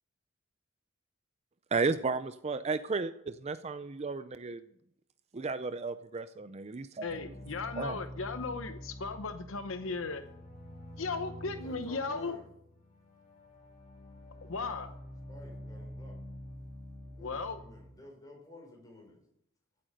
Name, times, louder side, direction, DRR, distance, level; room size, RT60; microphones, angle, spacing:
voice 1, 1.7-4.6 5.3-7.0 7.8-8.0, right 4 dB, 30° right, 12 dB, 0.5 m, -33 dB
voice 2, 7.0-10.2 11.0-12.4 14.5-14.9 17.2-17.6, left 4 dB, 65° left, 9 dB, 0.9 m, -36 dB
sound 1, 7.1-17.9, left 1 dB, 40° left, 5.2 m, -47 dB
voice 3, 11.4-12.5 15.3-16.2 17.0-19.2, left 1 dB, 15° left, -1 dB, 5.6 m, -52 dB
15.5 x 8.7 x 6.6 m, 0.75 s
head